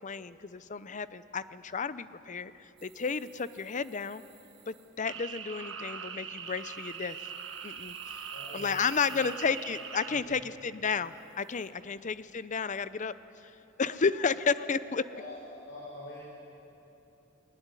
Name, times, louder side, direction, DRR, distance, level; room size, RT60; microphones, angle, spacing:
voice 1, 0.0-4.2 4.7-7.2 7.6-8.2 8.5-13.1 13.4-13.5 13.8-15.0, left 5 dB, 40° left, 15 dB, 0.6 m, -32 dB
sound 1, 2.8-5.0 6.5-10.0 11.0-11.7, right 8 dB, 30° right, 3.0 m, -58 dB
sound 2, 5.1-10.2, right 7 dB, 80° right, 1.5 m, -41 dB
voice 2, 8.3-9.2 10.1-10.6 14.5-14.6 15.1-16.2, left 1 dB, 85° left, -6 dB, 5.3 m, -46 dB
21.5 x 19.5 x 9.7 m, 3.0 s
head